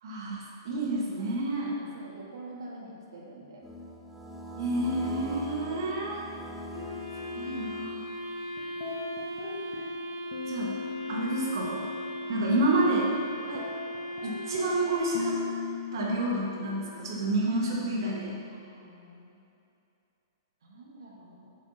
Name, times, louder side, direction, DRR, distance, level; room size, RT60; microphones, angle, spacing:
voice 1, 0.0-1.7 4.6-6.2 7.3-8.0 10.5-10.8 11.1-11.9 12.3-13.1 14.2-15.4 15.9-18.4, right 1 dB, 65° right, -3 dB, 1.6 m, -29 dB
voice 2, 0.8-3.6 13.5-13.7 18.5-19.4 20.6-21.6, right 2 dB, 80° right, -3 dB, 1.7 m, -46 dB
sound 1, 3.6-8.3, equal, 5° right, 0.6 m, -41 dB
Wind instrument woodwind instrument, 6.7-16.0, equal, 75° left, 1.2 m, -38 dB
sound 2, 8.6-10.0 10.3-13.0 13.3-17.7, left 7 dB, 55° left, 1.0 m, -40 dB
7.5 x 7.4 x 2.9 m, 2.7 s
hypercardioid pair, 150°, 2 cm